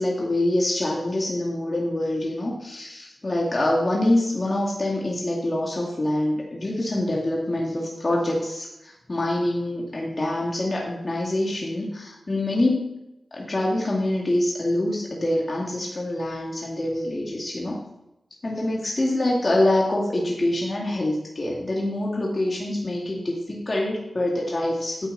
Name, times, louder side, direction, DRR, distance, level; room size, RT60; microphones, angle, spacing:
voice 1, 0.0-13.0 13.3-17.8 18.4-25.1, left 1 dB, 45° left, -3 dB, 2.3 m, -25 dB
12.0 x 8.8 x 4.1 m, 0.92 s
cardioid pair, 45°, 0 cm